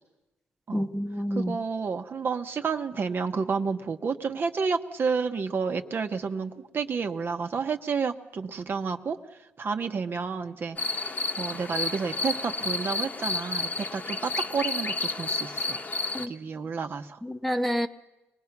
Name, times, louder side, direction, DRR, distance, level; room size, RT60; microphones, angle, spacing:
voice 1, 0.7-1.6 16.1-16.3 17.2-17.9, equal, ahead, 8 dB, 0.9 m, -28 dB
voice 2, 1.3-9.2 9.6-15.8 16.3-17.2, right 5 dB, 50° right, 6 dB, 1.1 m, -30 dB
sound 1, 10.8-16.3, left 3 dB, 35° left, 1.2 m, -31 dB
24.0 x 19.0 x 6.0 m, 1.0 s
cardioid pair, 75°, 5 cm